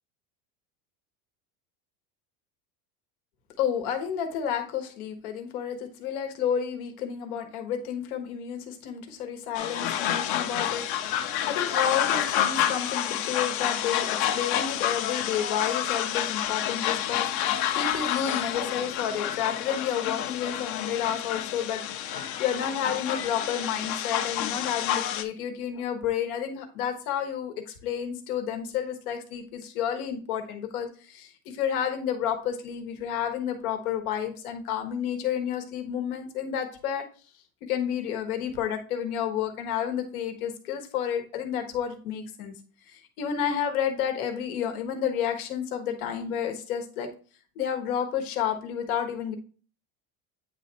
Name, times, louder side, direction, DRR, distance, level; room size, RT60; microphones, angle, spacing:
voice 1, 3.6-37.0 37.7-42.5 42.9-47.1 47.6-49.3, left 8 dB, 90° left, 6 dB, 1.4 m, -31 dB
sound 1, 9.6-25.2, left 11 dB, 60° left, 0.8 m, -29 dB
8.9 x 3.3 x 4.0 m, 0.39 s
supercardioid pair, 135°, 42 cm